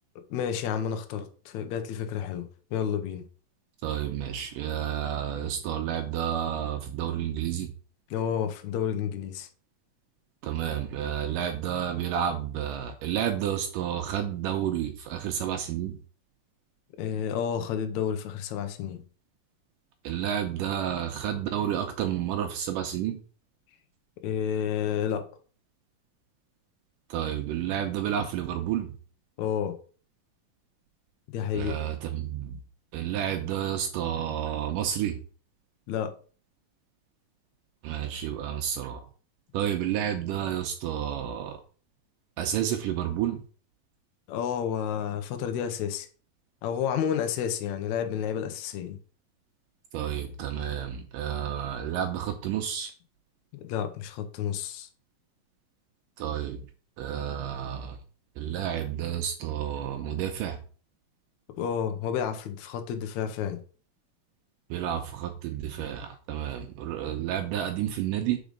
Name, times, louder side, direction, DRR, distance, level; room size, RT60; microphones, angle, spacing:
voice 1, 0.3-3.2 8.1-9.5 17.0-19.0 24.2-25.2 29.4-29.8 31.3-31.8 35.9-36.1 44.3-46.1 46.6-49.0 53.5-54.9 61.6-63.6, left 8 dB, 75° left, 1.7 m, -30 dB
voice 2, 3.8-7.7 10.4-16.0 20.0-23.2 27.1-29.0 31.5-32.6 32.9-35.2 37.8-39.0 39.5-41.6 42.4-43.4 49.9-52.9 56.2-56.7 57.0-58.0 58.4-60.6 64.7-68.4, right 10 dB, 80° right, 2.1 m, -30 dB
5.1 x 4.8 x 5.2 m
omnidirectional pair, 4.1 m